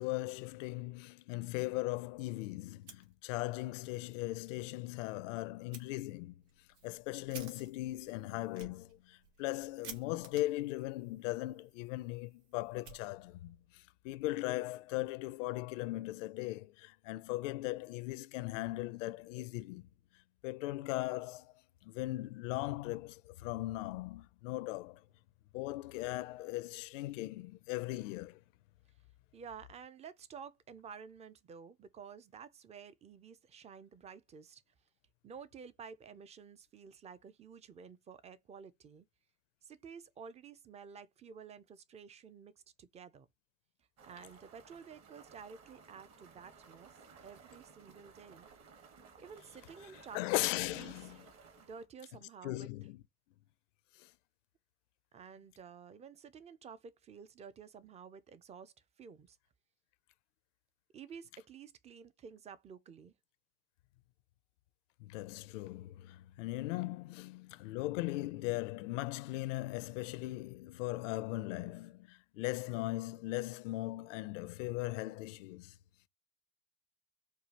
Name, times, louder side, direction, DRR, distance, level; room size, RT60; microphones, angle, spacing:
voice 1, 0.0-6.4 6.8-19.9 20.4-21.5 21.8-25.0 25.5-28.4 50.1-51.3 52.4-53.0 54.0-54.1 65.0-75.7, left 18 dB, 75° left, 0.5 m, -38 dB
Fire, 2.7-3.6 4.0-4.1 4.5-4.6 5.7-5.8 6.4-13.6, right 6 dB, 70° right, 1.8 m, -55 dB
voice 2, 29.3-34.6 35.2-39.1 39.6-42.5 42.8-43.3 44.0-46.9 47.2-48.5 49.2-50.4 50.7-51.2 51.7-52.7 55.1-58.7 59.0-59.4 60.9-63.1, right 6 dB, 20° right, 0.4 m, -52 dB
sound 1, 44.0-51.9, right 5 dB, 45° right, 1.3 m, -58 dB
4.6 x 2.4 x 2.8 m
supercardioid pair, 100°, 38 cm